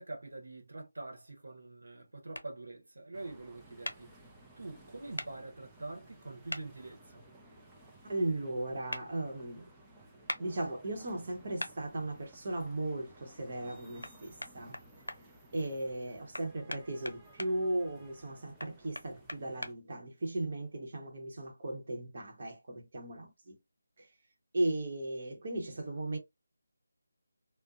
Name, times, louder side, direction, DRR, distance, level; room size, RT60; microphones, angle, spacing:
voice 1, 0.0-4.2 4.6-7.2, right 2 dB, 70° right, 0.9 m, -45 dB
sound 1, 2.3-2.5 3.8-4.0 5.2-5.3 6.5-6.6 8.9-9.0 10.3-10.4 11.6-11.7 14.0-14.1 14.4-15.2 16.3-17.5 18.6-19.7, left 1 dB, 85° left, 0.5 m, -39 dB
sound 2, 3.1-19.7, right 1 dB, 5° right, 0.5 m, -58 dB
voice 2, 8.0-9.7 10.4-14.8 15.5-23.6 24.0-24.1 24.5-26.2, right 1 dB, 45° right, 0.9 m, -36 dB
2.6 x 2.1 x 2.4 m
figure-of-eight pair, 160°, 0 cm